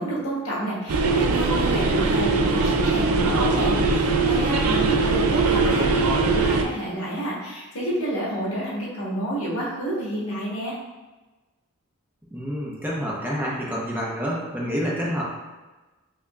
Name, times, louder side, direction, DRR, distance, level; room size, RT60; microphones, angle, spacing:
voice 1, 0.0-10.8, right 1 dB, 85° left, -5 dB, 1.2 m, -29 dB
sound 1, 0.9-6.6, right 3 dB, 80° right, 0.4 m, -21 dB
voice 2, 5.7-6.1 12.3-15.2, equal, 10° right, -5 dB, 0.7 m, -28 dB
4.7 x 2.8 x 2.3 m, 1.2 s
head